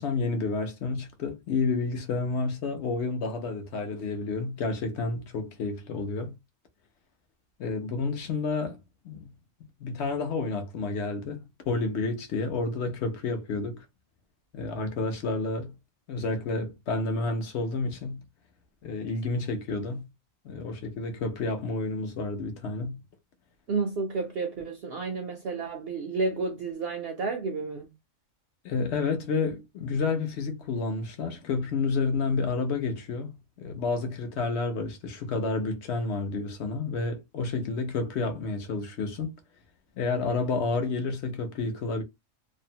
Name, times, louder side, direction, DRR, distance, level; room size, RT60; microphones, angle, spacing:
voice 1, 0.0-6.4 7.6-8.8 9.0-9.3 9.8-13.8 14.5-15.8 16.1-18.2 18.8-20.1 20.4-23.0 28.6-39.4 40.0-42.0, left 3 dB, 60° left, 0.9 m, -30 dB
voice 2, 23.7-27.9, right 3 dB, 65° right, 0.6 m, -31 dB
2.6 x 2.1 x 2.7 m
omnidirectional pair, 1.4 m